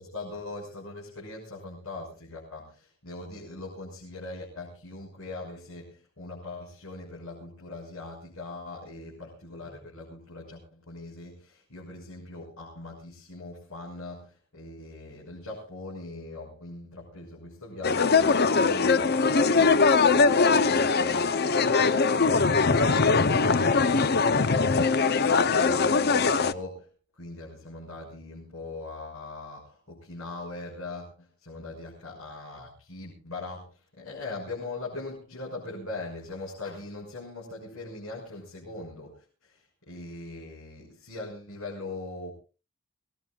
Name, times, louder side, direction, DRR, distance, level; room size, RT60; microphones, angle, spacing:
voice 1, 0.0-26.9 27.2-42.3, left 2 dB, 80° left, -3 dB, 6.4 m, -41 dB
sound 1, 17.8-26.5, left 4 dB, 50° left, 0.7 m, -21 dB
25.0 x 19.0 x 2.4 m, 0.34 s
head